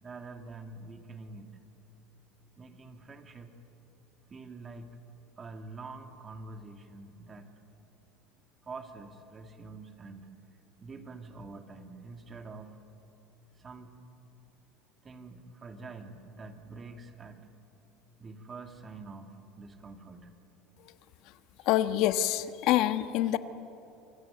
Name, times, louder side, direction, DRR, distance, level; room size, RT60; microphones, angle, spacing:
voice 1, 0.0-1.6 2.6-3.6 4.3-5.0 5.4-7.6 8.6-10.3 10.8-12.8 13.5-14.0 15.0-17.5 18.2-20.3 21.6-21.7, right 3 dB, 25° right, 6 dB, 2.4 m, -46 dB
voice 2, 21.6-23.4, left 13 dB, 65° left, 11 dB, 1.2 m, -26 dB
27.5 x 22.5 x 9.1 m, 2.9 s
supercardioid pair, 125°, 0 cm